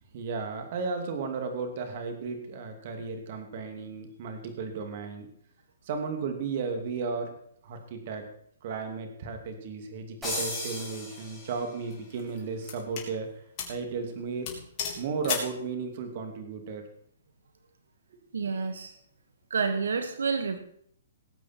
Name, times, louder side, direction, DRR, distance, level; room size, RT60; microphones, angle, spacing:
voice 1, 0.1-5.3 5.9-7.3 7.6-8.3 8.6-13.3 13.7-14.5 15.0-16.8, right 4 dB, 45° right, 5 dB, 2.6 m, -34 dB
sound 1, 10.2-11.8, left 2 dB, 5° right, 6.7 m, -36 dB
sound 2, 10.9-11.2 11.9-13.1 13.6-13.8 14.1-14.2 14.5-15.6, left 7 dB, 30° left, 3.6 m, -35 dB
voice 2, 18.3-18.9 19.5-20.6, right 5 dB, 90° right, 8 dB, 1.5 m, -29 dB
19.0 x 8.3 x 4.5 m, 0.65 s
hypercardioid pair, 155°, 0 cm